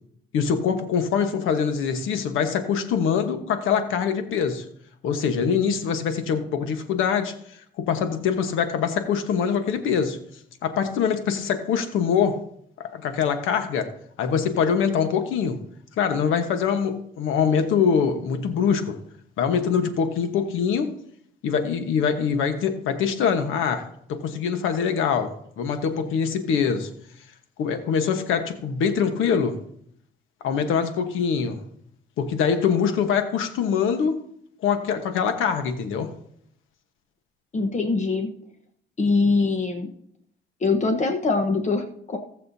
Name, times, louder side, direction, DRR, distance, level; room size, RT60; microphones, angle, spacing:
voice 1, 0.3-4.6 5.0-7.3 7.8-10.2 10.6-12.4 12.9-13.9 14.2-15.6 16.0-19.0 19.4-20.9 21.4-26.9 27.6-29.6 30.4-31.6 32.2-34.2 34.6-36.1, left 7 dB, 85° left, 1.2 m, -24 dB
voice 2, 37.5-38.3 39.0-39.9 40.6-42.2, left 3 dB, 35° left, 1.1 m, -23 dB
19.0 x 6.6 x 2.8 m
cardioid pair, 90°, 20 cm